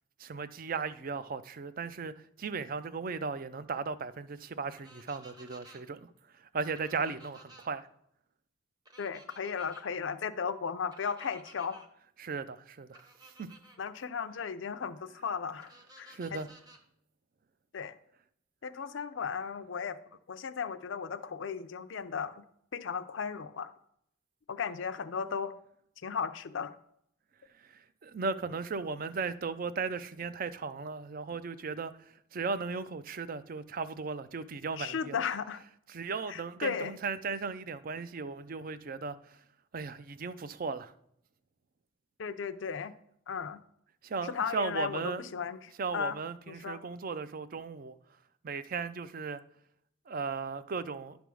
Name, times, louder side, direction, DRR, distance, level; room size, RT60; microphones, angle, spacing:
voice 1, 0.2-2.1 2.4-7.9 12.2-13.5 16.1-16.5 27.6-35.2 35.9-39.4 39.7-40.9 44.0-45.2 45.8-48.0 48.4-49.4 50.1-51.2, right 4 dB, 45° right, 0.4 m, -36 dB
sound 1, 4.8-5.8 6.7-7.7 8.8-9.8 10.9-11.9 12.9-13.8 15.6-16.8, right 1 dB, 20° right, 0.8 m, -55 dB
voice 2, 9.0-11.8 13.8-16.2 17.7-18.0 18.6-20.0 20.3-22.4 22.7-23.7 24.5-25.5 26.0-26.7 34.8-35.6 36.3-36.9 42.2-42.9 43.3-43.6 44.2-46.2 46.5-46.8, left 6 dB, 70° left, 0.5 m, -35 dB
10.0 x 3.5 x 6.2 m
head